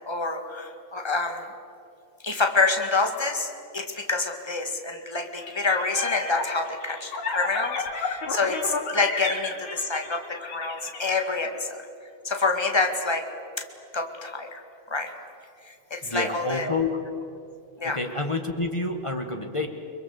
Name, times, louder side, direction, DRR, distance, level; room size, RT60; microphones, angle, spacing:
voice 1, 0.1-1.4 2.2-11.8 12.2-13.2 13.9-14.6 14.9-15.1 15.9-16.7 17.8-18.0, left 3 dB, 10° left, 4 dB, 1.3 m, -27 dB
sound 1, 5.4-11.2, left 4 dB, 70° left, 4.5 m, -32 dB
voice 2, 16.0-16.9 17.8-19.7, left 3 dB, 45° left, 5 dB, 0.4 m, -28 dB
30.0 x 22.0 x 8.2 m, 2.6 s
omnidirectional pair, 3.5 m